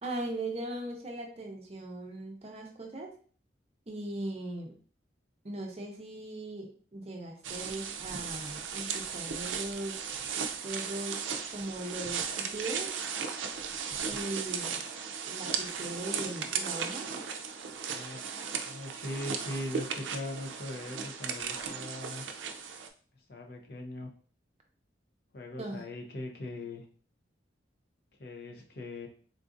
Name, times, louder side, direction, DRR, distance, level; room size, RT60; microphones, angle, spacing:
voice 1, 0.0-3.2 3.9-4.8 5.4-10.1 10.6-12.9 14.1-14.8 15.3-17.1 25.5-25.8, right 1 dB, 35° right, 2 dB, 0.6 m, -39 dB
sound 1, 7.4-22.9, right 6 dB, 90° right, 0.4 m, -36 dB
voice 2, 17.9-18.2 18.6-22.2 23.3-24.1 25.3-26.8 28.2-29.1, left 1 dB, 55° left, 2 dB, 0.6 m, -40 dB
3.7 x 2.4 x 2.5 m, 0.42 s
head